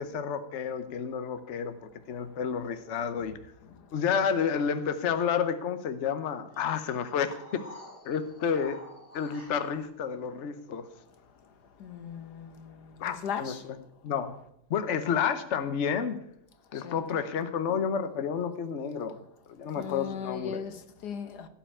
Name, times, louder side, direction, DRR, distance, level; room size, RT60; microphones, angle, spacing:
voice 1, 0.0-1.8 2.1-3.4 3.9-7.6 8.0-8.8 9.1-10.8 13.0-13.8 14.0-14.4 14.7-16.2 16.7-19.2 19.5-20.6, left 7 dB, 50° left, 1.2 m, -30 dB
sound 1, 6.5-9.9, left 1 dB, 35° left, 4.1 m, -49 dB
voice 2, 11.9-12.5 13.1-13.6 16.8-17.0 19.8-20.7 21.0-21.5, left 7 dB, 80° left, 1.7 m, -37 dB
16.5 x 5.7 x 8.5 m
omnidirectional pair, 1.7 m